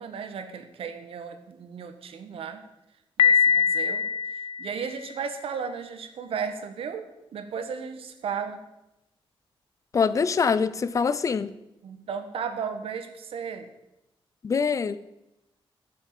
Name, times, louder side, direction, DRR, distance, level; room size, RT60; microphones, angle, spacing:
voice 1, 0.0-2.6 3.2-4.0 4.6-8.6 11.8-13.7, right 6 dB, 75° right, 8 dB, 1.5 m, -35 dB
Piano, 3.2-5.1, left 7 dB, 65° left, 0.9 m, -23 dB
voice 2, 9.9-11.5 14.4-15.0, left 5 dB, 35° left, 15 dB, 0.6 m, -24 dB
15.0 x 6.5 x 7.7 m, 0.92 s
wide cardioid pair, 175°, 10 cm